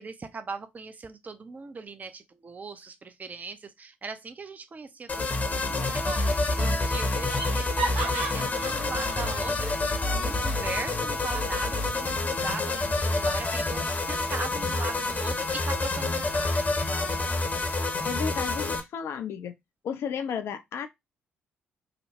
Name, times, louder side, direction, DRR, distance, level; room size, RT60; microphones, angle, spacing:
voice 1, 0.0-16.7, right 4 dB, 30° right, 0.4 m, -40 dB
sound 1, 5.1-18.8, left 2 dB, 30° left, 0.7 m, -28 dB
Laughter, 5.7-6.2 6.5-6.6 7.0-9.5, right 3 dB, 70° right, 1.2 m, -35 dB
voice 2, 18.0-19.5 19.8-20.9, left 7 dB, 55° left, 0.3 m, -33 dB
2.8 x 2.0 x 2.9 m
figure-of-eight pair, 40°, 5 cm